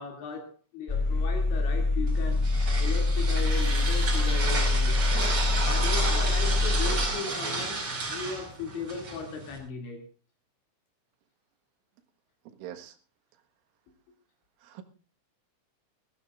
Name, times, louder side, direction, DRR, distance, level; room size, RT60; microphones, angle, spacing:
voice 1, 0.0-5.0 5.6-10.0, left 5 dB, 70° left, 3 dB, 4.8 m, -37 dB
sound 1, 0.9-7.1, left 2 dB, 10° left, 1.6 m, -25 dB
sound 2, 2.1-9.6, right 3 dB, 30° right, 5.6 m, -32 dB
voice 2, 12.5-13.0 14.6-14.8, right 12 dB, 85° right, 7 dB, 4.0 m, -43 dB
22.0 x 17.0 x 2.5 m, 0.36 s
omnidirectional pair, 5.5 m